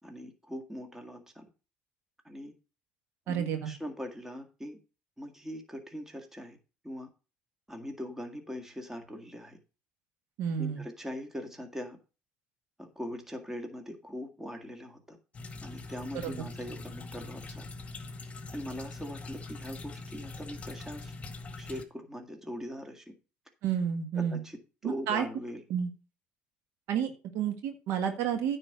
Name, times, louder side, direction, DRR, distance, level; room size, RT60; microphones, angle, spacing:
voice 1, 0.0-1.4 2.2-2.5 3.3-4.8 5.2-6.6 6.8-7.1 7.7-9.6 10.6-12.0 12.8-15.2 15.6-17.7 18.5-21.1 21.6-23.1 24.2-25.6, equal, 10° right, 5 dB, 1.8 m, -41 dB
voice 2, 3.3-3.7 10.4-10.8 16.2-16.3 23.6-24.4 24.8-25.2 25.7-25.9 26.9-28.6, right 8 dB, 70° right, 6 dB, 1.6 m, -30 dB
sound 1, 15.3-21.8, left 3 dB, 30° left, 1.5 m, -43 dB
9.4 x 4.3 x 6.6 m, 0.33 s
supercardioid pair, 95°, 4 cm